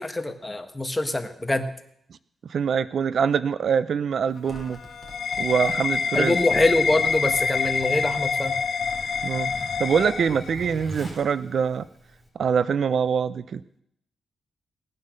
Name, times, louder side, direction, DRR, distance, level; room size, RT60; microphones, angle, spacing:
voice 1, 0.0-1.7 6.1-8.5, left 2 dB, 15° left, 7 dB, 1.4 m, -24 dB
voice 2, 2.5-4.8 5.4-6.3 9.2-9.5 9.8-11.8 12.4-13.6, right 7 dB, 65° right, 16 dB, 0.5 m, -24 dB
Zipper (clothing), 4.3-12.3, equal, 20° right, 3.7 m, -42 dB
sound 1, 4.4-10.8, left 6 dB, 55° left, 1.2 m, -27 dB
18.0 x 9.6 x 6.5 m, 0.73 s
cardioid pair, 100°, 0 cm